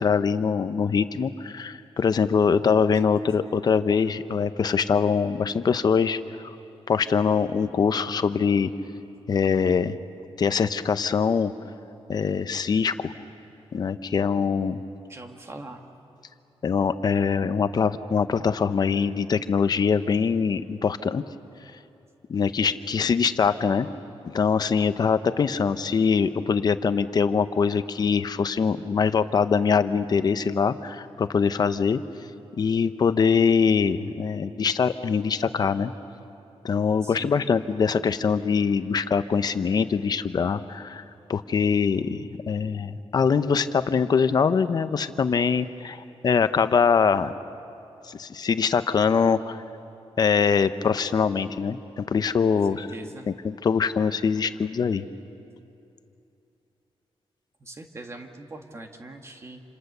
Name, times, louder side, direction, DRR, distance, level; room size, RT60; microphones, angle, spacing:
voice 1, 0.0-6.2 6.9-8.7 9.3-10.0 10.4-11.5 12.1-13.1 13.7-14.8 16.6-21.2 22.3-23.9 24.2-32.0 32.6-35.9 36.6-41.0 41.3-47.3 48.1-49.6 50.2-52.9 53.4-55.0, left 6 dB, 40° left, 12 dB, 0.7 m, -23 dB
voice 2, 15.1-15.9 37.0-37.5 52.7-53.3 57.6-59.6, right 2 dB, 25° right, 4 dB, 1.7 m, -42 dB
28.0 x 26.5 x 6.8 m, 2.8 s
wide cardioid pair, 175°, 10 cm